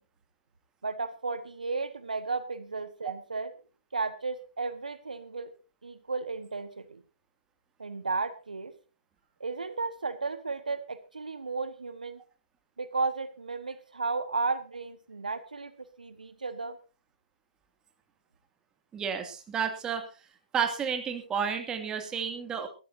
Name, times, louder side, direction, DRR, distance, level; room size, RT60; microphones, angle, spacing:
voice 1, 0.8-3.5 3.9-5.5 5.8-7.0 7.8-8.7 9.4-12.2 12.8-16.8, right 4 dB, 80° right, 12 dB, 1.3 m, -34 dB
voice 2, 18.9-20.1 20.5-22.7, right 7 dB, 15° right, 6 dB, 2.4 m, -31 dB
21.5 x 13.0 x 2.7 m, 0.33 s
figure-of-eight pair, 125°, 4 cm